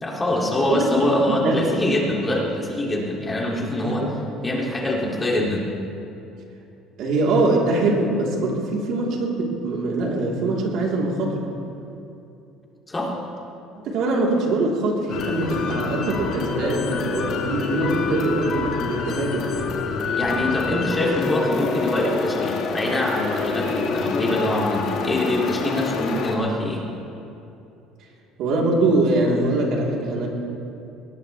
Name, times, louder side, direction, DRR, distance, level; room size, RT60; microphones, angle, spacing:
voice 1, 0.0-4.1 4.4-5.7 12.9-13.1 20.1-26.8, left 1 dB, 15° left, -2 dB, 2.5 m, -24 dB
voice 2, 1.3-1.6 3.8-4.1 7.0-11.5 13.8-19.5 28.4-30.3, right 2 dB, 60° right, -2 dB, 3.4 m, -23 dB
sound 1, 15.1-26.4, left 5 dB, 55° left, 1.8 m, -27 dB
22.0 x 19.0 x 3.3 m, 2.7 s
cardioid pair, 135°, 0 cm